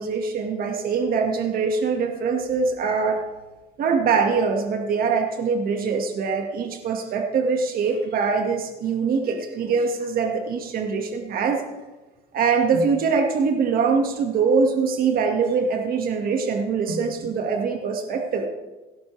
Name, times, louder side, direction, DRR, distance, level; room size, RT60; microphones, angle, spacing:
voice 1, 0.0-3.2 3.8-11.6 12.3-18.5, right 5 dB, 60° right, 3 dB, 1.8 m, -23 dB
17.5 x 11.5 x 3.3 m, 1.1 s
cardioid pair, 110°, 17 cm